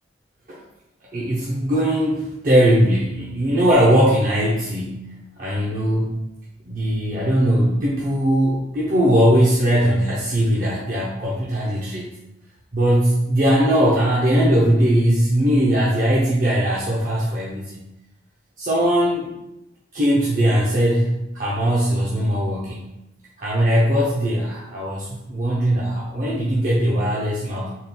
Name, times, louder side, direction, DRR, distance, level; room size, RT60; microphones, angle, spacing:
voice 1, 1.1-6.1 6.7-12.1 12.7-17.8 18.6-19.3 19.9-22.9 23.4-27.7, equal, 50° right, -5 dB, 0.6 m, -20 dB
4.1 x 3.5 x 2.2 m, 0.89 s
head